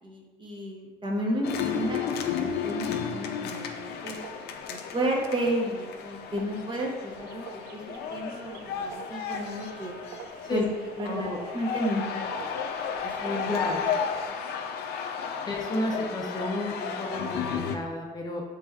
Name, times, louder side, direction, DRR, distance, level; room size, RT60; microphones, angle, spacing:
voice 1, 0.0-2.2 2.4-4.2 4.7-7.4 7.7-10.0 10.5-10.6 11.0-12.5 13.0-13.5, equal, 30° right, -1 dB, 0.8 m, -32 dB
sound 1, 1.4-17.8, left 7 dB, 75° left, 0.4 m, -33 dB
sound 2, 3.8-14.3, right 6 dB, 70° right, 0.4 m, -48 dB
voice 2, 11.0-11.4 13.5-13.9 15.5-18.4, left 1 dB, 25° left, -1 dB, 0.5 m, -32 dB
5.8 x 3.3 x 2.3 m, 1.3 s
cardioid pair, 110°, 17 cm